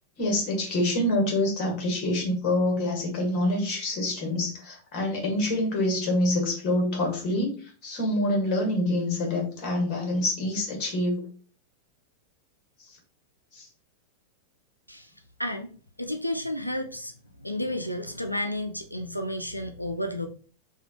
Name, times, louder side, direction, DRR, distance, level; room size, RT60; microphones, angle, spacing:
voice 1, 0.2-11.2 13.5-13.7, left 1 dB, 40° left, 0 dB, 1.5 m, -26 dB
voice 2, 15.4-15.7 16.0-17.1 17.4-20.3, left 1 dB, 90° left, 6 dB, 0.3 m, -31 dB
3.2 x 2.4 x 3.5 m, 0.41 s
figure-of-eight pair, 90°, 0 cm